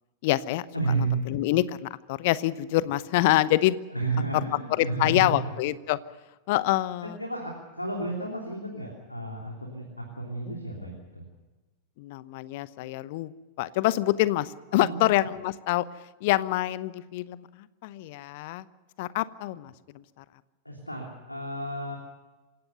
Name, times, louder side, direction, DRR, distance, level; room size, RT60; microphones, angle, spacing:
voice 1, 0.2-0.6 1.0-3.8 4.7-6.0 6.5-7.2 12.0-13.3 13.6-15.9 16.2-18.6 19.0-20.0, left 16 dB, 50° left, 17 dB, 0.9 m, -26 dB
voice 2, 0.7-1.2 3.9-5.5 7.0-11.2 14.7-15.1 20.6-22.0, right 3 dB, 85° left, 1 dB, 3.1 m, -32 dB
27.0 x 16.5 x 6.7 m, 1.2 s
figure-of-eight pair, 90°, 0 cm